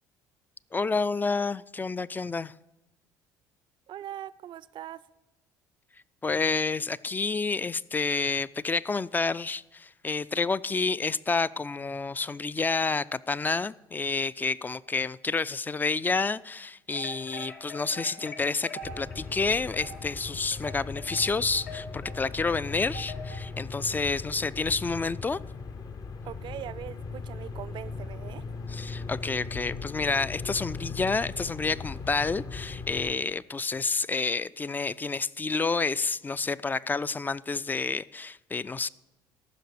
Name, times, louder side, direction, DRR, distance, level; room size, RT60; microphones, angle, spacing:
voice 1, 0.7-2.5 6.2-18.7 19.0-25.4 28.7-38.9, left 4 dB, 20° left, 18 dB, 0.3 m, -29 dB
voice 2, 3.9-5.0 26.2-28.4, right 11 dB, 50° right, 19 dB, 0.4 m, -41 dB
sound 1, 16.9-23.5, left 1 dB, 80° left, 1.6 m, -44 dB
sound 2, 18.8-33.1, left 4 dB, 35° left, 0.7 m, -39 dB
14.0 x 6.0 x 6.8 m, 0.98 s
hypercardioid pair, 60°, 10 cm